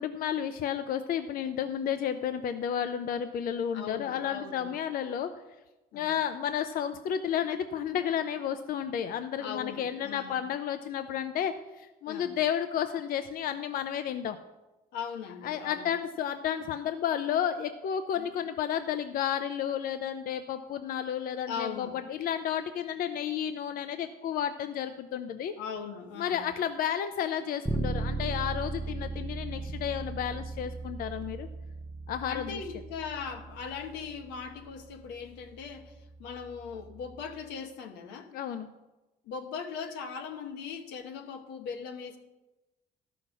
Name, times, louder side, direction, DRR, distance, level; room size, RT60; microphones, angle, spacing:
voice 1, 0.0-5.3 5.9-14.4 15.4-25.5 26.2-31.5 32.1-32.6 38.3-38.7, left 9 dB, 60° left, 10 dB, 0.6 m, -32 dB
voice 2, 3.7-4.7 5.9-6.1 9.4-10.4 12.1-12.4 14.9-15.9 18.2-18.3 21.5-22.0 25.6-26.5 32.2-38.3 39.2-42.2, left 6 dB, 90° left, 6 dB, 1.2 m, -39 dB
Bass guitar, 27.7-37.5, right 3 dB, 5° right, 0.6 m, -38 dB
12.5 x 5.8 x 6.3 m, 1.1 s
cardioid pair, 110°, 17 cm